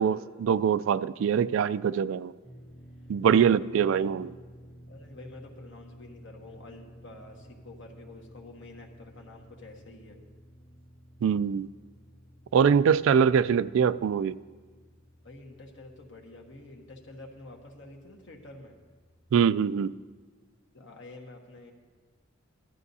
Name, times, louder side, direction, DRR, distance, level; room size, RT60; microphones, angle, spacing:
voice 1, 0.0-2.3 3.1-4.3 11.2-11.7 12.5-14.4 19.3-19.9, right 7 dB, 75° right, 16 dB, 0.3 m, -23 dB
sound 1, 2.4-20.1, equal, 85° left, 2.1 m, -53 dB
voice 2, 3.2-4.1 4.9-10.2 15.2-18.8 20.7-21.7, left 2 dB, 70° left, 1 dB, 1.5 m, -48 dB
16.5 x 12.5 x 2.7 m, 1.4 s
head